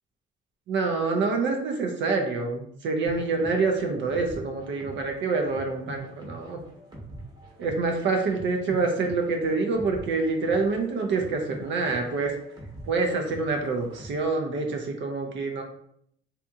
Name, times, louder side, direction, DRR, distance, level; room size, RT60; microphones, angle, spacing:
voice 1, 0.7-6.6 7.6-12.3 12.9-15.6, right 3 dB, 70° right, 2 dB, 0.5 m, -26 dB
sound 1, 3.0-14.3, right 1 dB, 20° right, 0.9 m, -44 dB
2.7 x 2.5 x 2.3 m, 0.70 s
cardioid pair, 90°, 20 cm